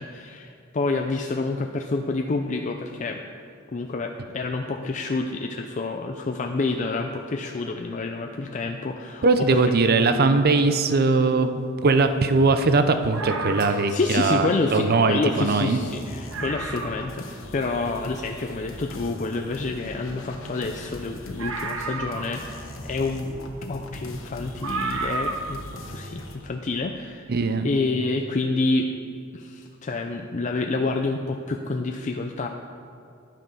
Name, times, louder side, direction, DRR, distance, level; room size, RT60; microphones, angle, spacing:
voice 1, 0.0-3.2 3.7-9.6 13.7-23.3 23.7-27.3 27.6-28.9 29.3-32.5, left 3 dB, 35° left, 4 dB, 0.5 m, -28 dB
voice 2, 9.2-15.8 27.3-27.7, right 3 dB, 50° right, 9 dB, 0.6 m, -20 dB
sound 1, 13.1-14.0 15.1-15.2 15.5-15.6 16.0-16.1 16.3-17.1 17.6-17.7 21.4-22.7 23.8-23.9 24.6-25.6 25.9-26.0, right 3 dB, 80° right, 1.1 m, -31 dB
sound 2, 15.8-26.4, left 1 dB, 70° left, 1.2 m, -40 dB
10.5 x 8.8 x 5.4 m, 2.5 s
head